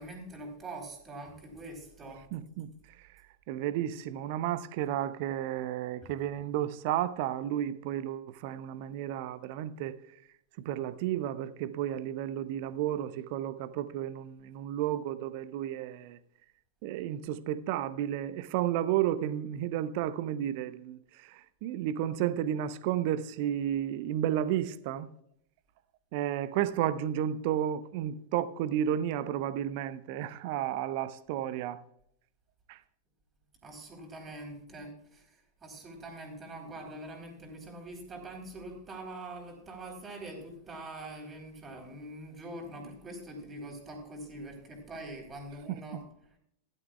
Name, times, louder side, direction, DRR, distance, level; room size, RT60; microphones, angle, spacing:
voice 1, 0.0-2.2 6.0-6.1 33.6-46.0, right 1 dB, 20° right, 4.0 m, -44 dB
voice 2, 2.3-2.7 3.5-10.0 10.6-16.2 16.8-25.1 26.1-31.8 32.7-32.8 45.7-46.0, right 11 dB, 45° right, 0.8 m, -32 dB
16.0 x 12.0 x 2.4 m
figure-of-eight pair, 90°, 0 cm